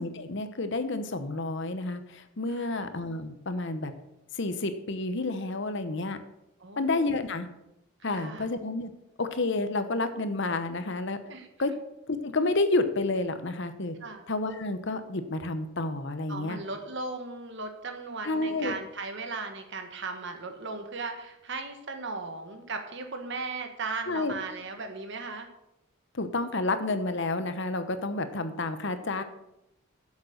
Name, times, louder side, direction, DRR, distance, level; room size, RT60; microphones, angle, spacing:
voice 1, 0.0-3.9 4.3-6.2 6.8-7.5 8.0-8.9 9.2-11.2 11.6-11.7 12.1-14.0 14.3-16.6 18.2-18.7 24.1-24.3 26.1-29.2, left 2 dB, 55° left, 10 dB, 0.9 m, -30 dB
voice 2, 2.5-2.9 6.6-7.2 8.0-8.5 11.3-11.5 14.0-14.2 16.3-25.5, right 3 dB, 55° right, 6 dB, 1.4 m, -37 dB
8.3 x 7.3 x 6.5 m, 0.86 s
head